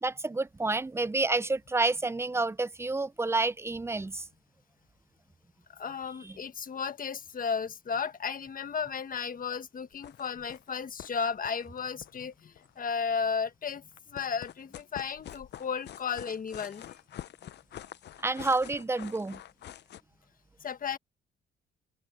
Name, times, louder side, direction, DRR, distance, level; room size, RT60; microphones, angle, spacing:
voice 1, 0.0-4.3 6.2-6.4 18.2-19.4, right 3 dB, 15° right, 0.6 m, -29 dB
voice 2, 5.7-16.9 20.6-21.0, left 6 dB, 45° left, 1.5 m, -34 dB
sound 1, 9.9-10.7 11.0-11.1 11.4-12.8 13.9-20.0, left 11 dB, 60° left, 0.7 m, -46 dB
cardioid pair, 90°, 20 cm